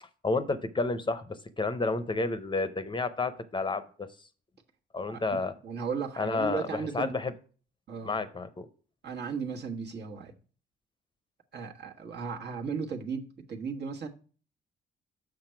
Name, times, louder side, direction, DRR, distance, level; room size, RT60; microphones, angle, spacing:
voice 1, 0.0-4.1 4.9-5.5 6.2-6.7 6.9-7.3 8.0-8.7, left 3 dB, 25° left, 0.7 m, -31 dB
voice 2, 5.6-7.2 7.9-8.2 9.0-10.3 11.5-14.1, right 6 dB, 60° right, 1.3 m, -35 dB
6.4 x 5.8 x 4.5 m
cardioid pair, 90°, 20 cm